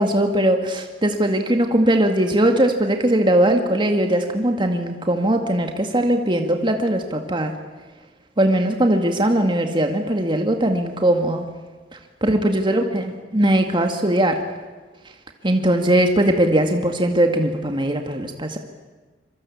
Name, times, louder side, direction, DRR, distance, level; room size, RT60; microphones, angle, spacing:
voice 1, 0.0-7.5 8.4-11.5 12.2-14.4 15.4-18.6, right 1 dB, 25° right, 4 dB, 2.0 m, -20 dB
26.0 x 24.0 x 8.6 m, 1.3 s
head